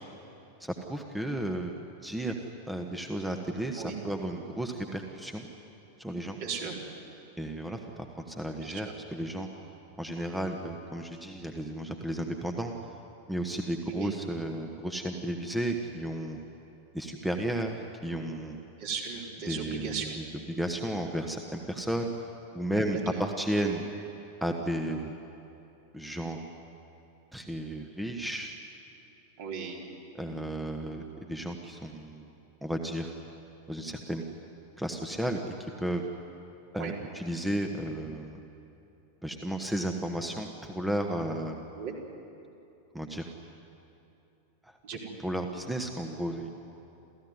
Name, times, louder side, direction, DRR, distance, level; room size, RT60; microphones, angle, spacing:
voice 1, 0.6-2.3 2.7-5.5 6.0-6.4 7.4-9.5 10.0-12.7 13.3-16.4 16.9-18.6 19.5-22.1 22.5-23.8 24.4-25.1 25.9-26.4 27.3-28.6 30.1-32.3 32.6-33.1 33.7-34.2 34.8-36.0 36.7-38.4 39.2-41.6 42.9-43.3 44.6-44.8 45.2-46.5, right 1 dB, 5° right, 4 dB, 1.5 m, -33 dB
voice 2, 6.4-6.7 8.6-8.9 13.9-14.1 18.8-20.1 22.7-23.3 29.4-29.8 36.8-36.9 41.8-41.9 44.8-45.1, right 6 dB, 50° right, -1 dB, 4.3 m, -36 dB
29.0 x 14.5 x 9.6 m, 2.8 s
figure-of-eight pair, 90°, 0 cm